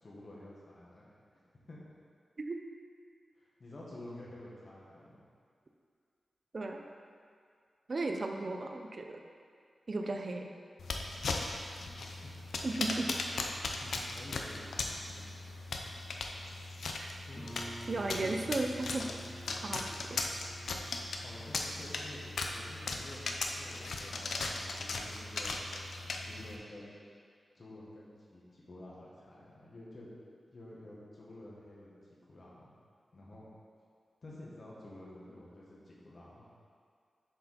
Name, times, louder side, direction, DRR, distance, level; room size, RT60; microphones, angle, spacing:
voice 1, 0.0-1.1 1.7-1.8 3.4-5.2 11.7-12.3 13.7-15.3 17.2-17.5 18.1-18.3 21.2-25.6 26.2-27.0 27.5-30.1 30.5-32.7 33.1-33.5 34.2-36.5, left 1 dB, 45° left, -6 dB, 1.5 m, -50 dB
voice 2, 6.5-6.8 7.9-9.2 9.9-10.5 12.6-13.1 17.0-17.1 17.9-19.1 19.6-20.2, right 2 dB, 45° right, 4 dB, 0.4 m, -35 dB
sound 1, 10.8-26.6, left 3 dB, 80° left, 0.5 m, -38 dB
Guitar, 17.4-22.8, right 1 dB, 10° left, 0.7 m, -51 dB
6.8 x 4.7 x 4.0 m, 2.1 s
wide cardioid pair, 125°, 0 cm